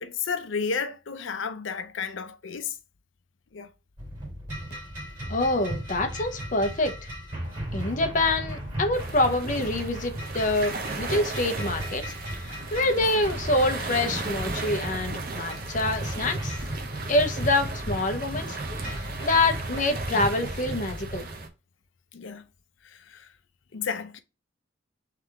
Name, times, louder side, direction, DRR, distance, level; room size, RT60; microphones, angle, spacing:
voice 1, 0.0-2.8 3.5-3.7 12.8-13.1 22.1-22.4 22.8-23.3 23.7-24.2, left 5 dB, 80° left, 0.6 m, -32 dB
sound 1, 4.0-21.2, right 1 dB, 25° right, 2.3 m, -35 dB
voice 2, 5.3-6.9 7.7-12.0 12.3-16.6 17.1-21.3, left 2 dB, 40° left, 0.7 m, -26 dB
sound 2, 8.9-21.5, right 3 dB, 50° right, 0.8 m, -36 dB
3.5 x 3.3 x 3.5 m
head